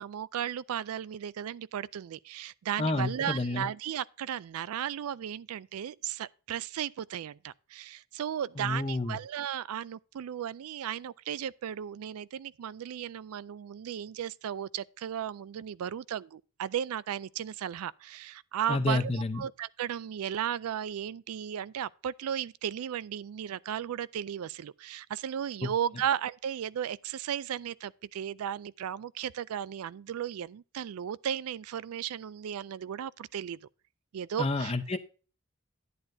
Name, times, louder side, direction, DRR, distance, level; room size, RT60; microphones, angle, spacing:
voice 1, 0.0-33.6 34.1-35.0, right 9 dB, 85° right, 0.3 m, -35 dB
voice 2, 2.8-3.6 8.6-9.2 18.7-19.4 34.4-35.0, left 2 dB, 25° left, 0.7 m, -29 dB
11.0 x 9.8 x 2.7 m
head